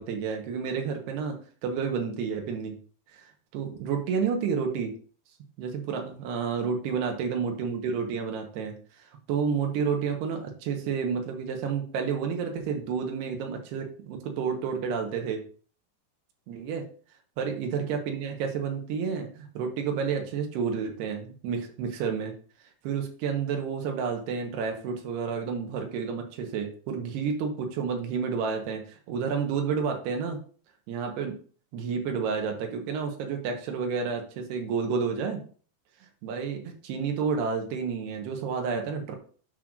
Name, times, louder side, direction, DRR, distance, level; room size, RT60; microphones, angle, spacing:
voice 1, 0.0-1.4 1.6-2.8 3.1-3.3 3.5-4.9 5.6-8.7 9.3-15.4 16.5-16.8 17.4-22.3 22.8-30.4 30.9-31.3 31.7-35.4 36.2-39.2, right 6 dB, 85° right, 3 dB, 3.2 m, -30 dB
9.9 x 6.2 x 2.6 m, 0.42 s
omnidirectional pair, 4.6 m